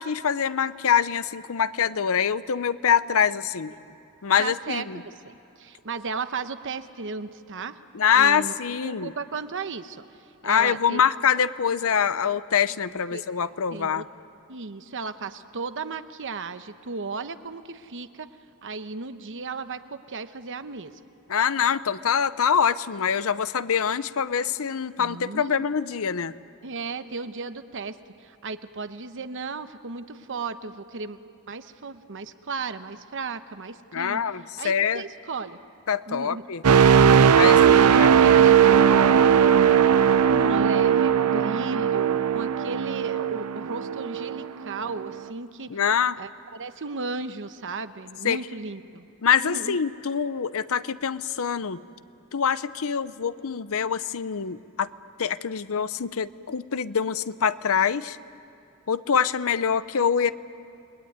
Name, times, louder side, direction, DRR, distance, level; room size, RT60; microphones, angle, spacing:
voice 1, 0.0-3.7 4.2-5.0 7.9-9.1 10.4-14.0 21.3-26.3 33.9-35.0 35.9-36.6 37.3-38.3 45.7-46.2 48.2-48.4 49.2-51.8 52.3-54.9 55.2-58.2 58.9-60.3, left 7 dB, 70° left, 15 dB, 0.7 m, -24 dB
voice 2, 4.4-7.8 8.1-10.0 10.4-11.1 12.9-13.2 13.7-14.1 14.5-18.3 18.6-21.0 25.0-25.7 26.6-31.2 31.5-34.2 34.6-35.6 36.1-36.4 37.4-39.9 40.3-45.8 46.1-49.1 49.4-49.8, right 4 dB, 60° right, 10 dB, 1.0 m, -35 dB
sound 1, 36.6-44.5 44.9-45.2, right 8 dB, 80° right, 0.6 m, -18 dB
30.0 x 21.0 x 9.5 m, 2.7 s
head